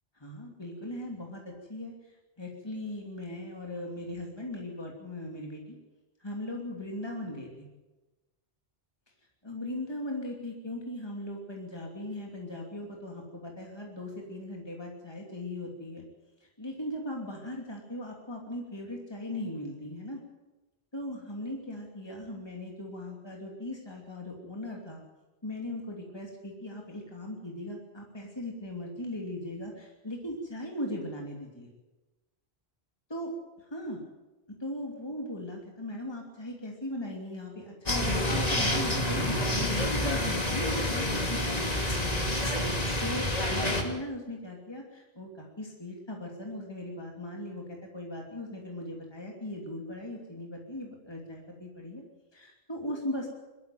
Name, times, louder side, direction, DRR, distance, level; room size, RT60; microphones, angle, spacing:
voice 1, 0.2-5.8 6.2-7.7 9.4-16.0 16.4-20.2 20.9-25.0 25.4-31.7 33.1-33.3 33.7-34.0 34.5-41.7 43.0-47.6 47.9-52.0 52.3-53.3, left 1 dB, 25° left, 0 dB, 3.0 m, -38 dB
sound 1, 37.9-43.8, left 1 dB, 40° left, 2.7 m, -28 dB
21.5 x 14.0 x 9.3 m, 1.1 s
omnidirectional pair, 1.0 m